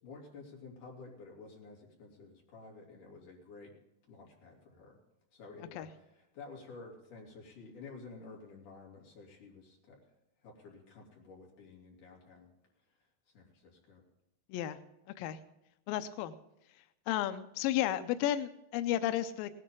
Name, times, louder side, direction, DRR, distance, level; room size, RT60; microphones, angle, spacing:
voice 1, 0.0-3.7 4.1-5.0 5.3-10.0 10.4-12.5 13.3-14.0, left 3 dB, 50° left, -2 dB, 4.4 m, -51 dB
voice 2, 15.9-16.3 17.1-19.5, left 12 dB, 85° left, 10 dB, 2.0 m, -33 dB
18.5 x 11.0 x 3.7 m, 0.92 s
omnidirectional pair, 4.8 m